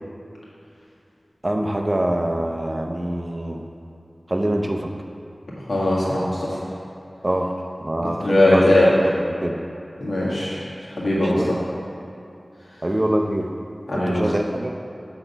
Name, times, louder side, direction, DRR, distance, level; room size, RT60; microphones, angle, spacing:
voice 1, 1.4-3.6 4.3-4.9 7.2-7.5 7.8-8.7 9.0-9.6 11.2-11.5 12.8-13.5 13.9-14.7, right 1 dB, 35° right, 2 dB, 0.6 m, -24 dB
voice 2, 5.7-6.6 8.2-8.9 10.0-10.7 11.0-11.6 13.9-14.3, left 1 dB, 80° left, -7 dB, 1.8 m, -19 dB
8.0 x 4.0 x 5.4 m, 2.7 s
wide cardioid pair, 50°, 0 cm